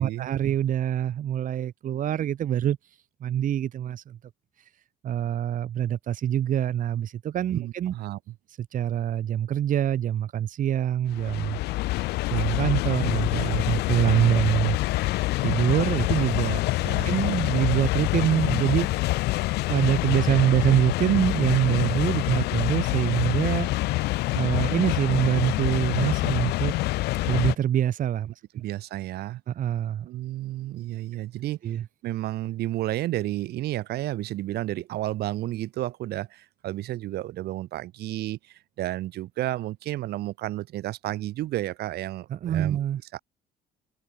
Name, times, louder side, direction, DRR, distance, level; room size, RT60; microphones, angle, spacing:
voice 1, 0.0-2.8 3.2-4.2 5.0-7.9 8.7-11.6 12.3-14.8 15.4-16.6 17.0-18.9 19.7-23.7 24.3-26.7 27.3-28.3 29.5-30.1 31.6-31.8 42.3-43.0, right 10 dB, 50° right, 1.4 m, -25 dB
voice 2, 7.5-8.3 16.8-17.1 28.5-29.4 30.0-42.8 43.1-43.2, right 15 dB, 75° right, 1.9 m, -32 dB
sound 1, 11.1-27.6, left 19 dB, 80° left, 0.6 m, -26 dB
cardioid pair, 110°, 17 cm